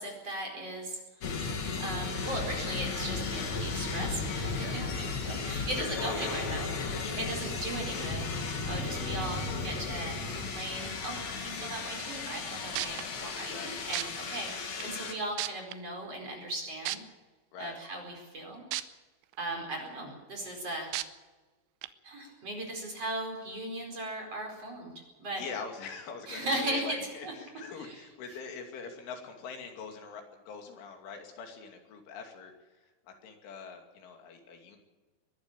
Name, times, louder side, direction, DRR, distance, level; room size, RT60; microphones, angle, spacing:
voice 1, 0.0-1.4 1.8-6.7 7.1-8.3 8.7-17.0 17.6-18.7 19.4-20.9 22.0-24.9 25.2-25.4 26.3-27.3 27.8-28.0, right 1 dB, 35° right, 2 dB, 5.2 m, -38 dB
sound 1, 1.2-15.1, left 4 dB, 45° left, 2.6 m, -35 dB
voice 2, 6.7-7.3 13.5-13.7 17.5-17.8 25.4-32.8 33.1-34.8, left 5 dB, 80° left, 4 dB, 5.1 m, -43 dB
sound 2, 12.8-13.0 13.9-14.0 14.8-14.9 15.4-15.7 16.9-17.0 18.7-18.8 19.3-19.4 20.9-21.0 21.8-21.9, right 16 dB, 90° right, 3.3 m, -32 dB
22.5 x 13.0 x 8.8 m, 1.2 s
omnidirectional pair, 5.4 m